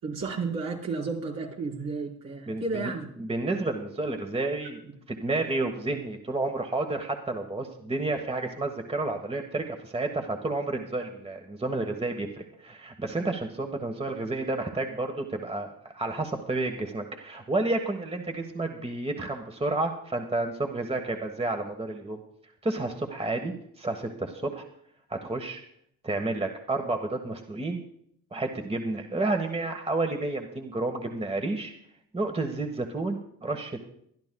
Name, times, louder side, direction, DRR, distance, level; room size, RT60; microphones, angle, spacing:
voice 1, 0.0-3.1 4.8-4.9, right 4 dB, 70° right, -4 dB, 4.9 m, -32 dB
voice 2, 2.5-2.9 3.2-4.8 5.1-22.2 22.6-24.6 25.1-25.6 26.0-27.8 28.3-31.7 32.1-33.9, right 2 dB, 15° right, 5 dB, 1.4 m, -30 dB
23.5 x 11.5 x 2.3 m, 0.69 s
supercardioid pair, 65°, 35 cm